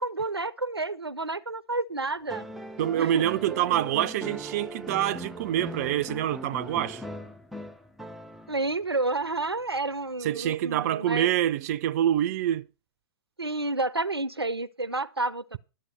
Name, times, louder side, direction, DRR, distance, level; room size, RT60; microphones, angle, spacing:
voice 1, 0.0-2.5 2.9-3.2 8.5-11.3 13.4-15.6, right 2 dB, 90° right, 0.6 m, -30 dB
sound 1, 2.3-8.7 10.2-10.3, equal, ahead, 0.7 m, -40 dB
voice 2, 2.8-7.0 10.2-12.7, right 12 dB, 40° right, 0.5 m, -26 dB
12.0 x 7.4 x 5.5 m
figure-of-eight pair, 110°, 13 cm